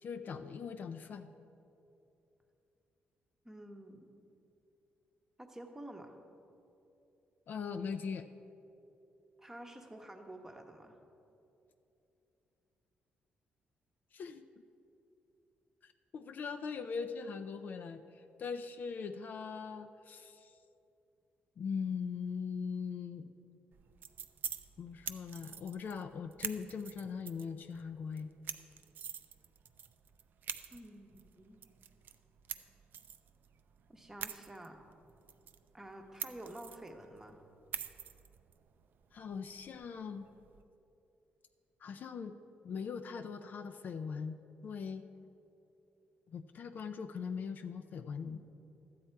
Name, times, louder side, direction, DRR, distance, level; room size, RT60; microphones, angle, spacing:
voice 1, 0.0-1.3 7.5-8.3 14.1-14.5 15.8-20.5 21.6-23.3 24.8-28.3 39.1-40.3 41.8-42.4 42.6-44.4 44.6-45.0 46.3-48.4, left 6 dB, 55° left, 8 dB, 0.4 m, -41 dB
voice 2, 3.4-4.1 5.4-6.2 9.4-11.0 30.7-31.6 33.9-34.8 35.7-37.4, right 1 dB, 10° right, 4 dB, 0.9 m, -49 dB
sound 1, 23.7-40.6, right 8 dB, 60° right, 0.4 m, -47 dB
12.5 x 8.5 x 4.5 m, 2.8 s
cardioid pair, 125°, 4 cm